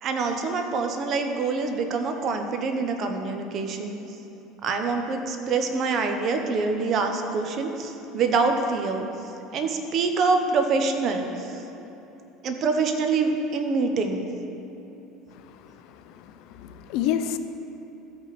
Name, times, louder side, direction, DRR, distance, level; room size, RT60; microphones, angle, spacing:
voice 1, 0.0-4.0 4.6-9.1 9.5-11.5 12.4-14.3, right 4 dB, 45° right, 5 dB, 0.9 m, -25 dB
voice 2, 16.6-17.4, left 10 dB, 65° left, 10 dB, 0.5 m, -28 dB
13.5 x 5.2 x 4.2 m, 3.0 s
supercardioid pair, 115°, 0 cm